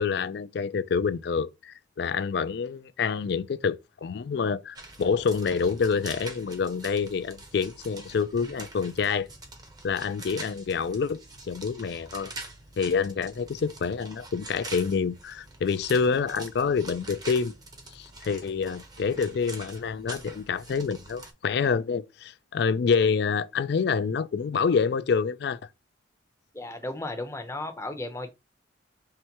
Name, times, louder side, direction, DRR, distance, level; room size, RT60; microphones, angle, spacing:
voice 1, 0.0-9.3 9.8-11.2 11.5-12.3 12.8-17.5 17.9-25.6, left 5 dB, 55° left, 0.3 m, -27 dB
sound 1, 4.7-21.3, right 2 dB, 20° right, 0.8 m, -45 dB
voice 2, 26.5-28.3, left 2 dB, 15° left, 0.6 m, -34 dB
5.8 x 3.1 x 2.9 m
head